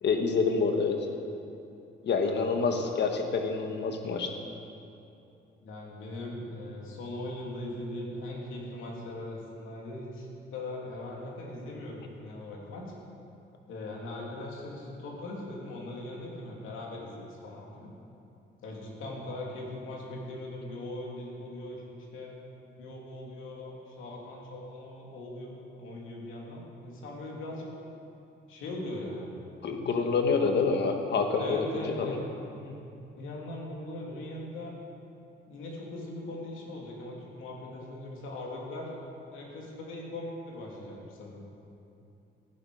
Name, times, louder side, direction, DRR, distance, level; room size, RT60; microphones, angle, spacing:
voice 1, 0.0-1.0 2.0-4.3 29.6-32.2, left 4 dB, 60° left, 4 dB, 1.6 m, -27 dB
voice 2, 2.2-2.9 5.6-12.9 13.7-17.9 18.6-21.8 22.1-22.3 22.8-27.7 28.5-29.3 30.0-30.1 30.6-30.8 31.4-32.8 33.2-34.7 35.5-38.9 39.3-41.4, left 1 dB, 85° left, -2 dB, 2.9 m, -40 dB
15.0 x 11.5 x 5.0 m, 2.8 s
cardioid pair, 90°, 20 cm